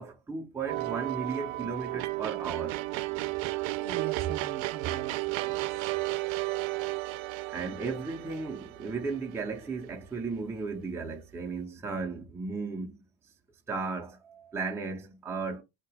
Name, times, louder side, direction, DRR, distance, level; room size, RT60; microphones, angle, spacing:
voice 1, 0.0-2.8 7.5-13.0 13.7-15.6, right 4 dB, 5° right, 0.5 m, -35 dB
sound 1, 0.7-9.9, right 20 dB, 80° right, 0.5 m, -33 dB
voice 2, 3.4-5.9, right 8 dB, 45° right, 0.8 m, -40 dB
3.7 x 2.9 x 4.7 m
cardioid pair, 155°, 46 cm